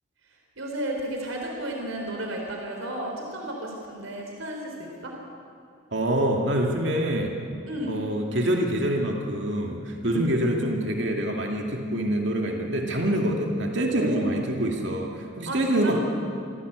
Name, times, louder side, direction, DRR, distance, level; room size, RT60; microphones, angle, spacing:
voice 1, 0.6-5.2 7.7-8.0 10.0-10.3 13.9-14.4 15.5-16.0, right 1 dB, 90° right, 0 dB, 3.6 m, -32 dB
voice 2, 5.9-7.3 7.9-16.0, right 1 dB, 60° right, 1 dB, 2.4 m, -26 dB
25.0 x 16.0 x 8.1 m, 2.4 s
head